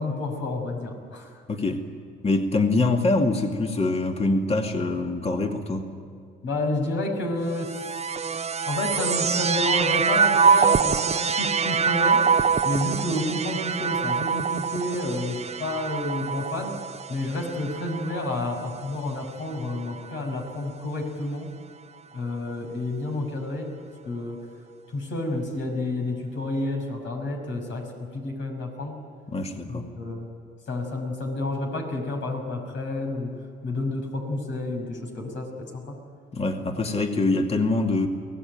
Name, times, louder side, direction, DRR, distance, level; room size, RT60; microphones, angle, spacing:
voice 1, 0.0-1.3 6.4-8.1 8.7-12.3 12.6-16.8 17.1-21.5 22.1-23.7 24.0-24.4 24.9-29.0 29.7-30.3 30.7-33.3 33.6-36.0, left 2 dB, 70° left, 2 dB, 6.0 m, -30 dB
voice 2, 1.5-1.8 2.2-5.9 29.3-29.9 36.3-38.1, left 2 dB, 30° left, 3 dB, 2.4 m, -24 dB
sound 1, 7.5-19.0 19.8-20.5, right 6 dB, 35° right, 0.8 m, -25 dB
24.0 x 18.0 x 9.3 m, 2.4 s
cardioid pair, 90°, 20 cm